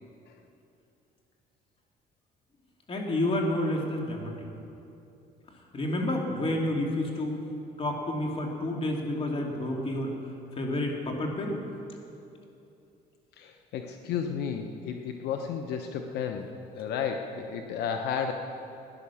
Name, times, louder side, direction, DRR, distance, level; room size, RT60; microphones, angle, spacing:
voice 1, 2.9-4.3 5.7-7.3 7.8-10.1 10.5-11.6, left 1 dB, 35° left, 0 dB, 2.7 m, -29 dB
voice 2, 13.4-18.3, left 7 dB, 80° left, 5 dB, 0.9 m, -33 dB
16.5 x 10.5 x 7.1 m, 2.7 s
cardioid pair, 110°, 17 cm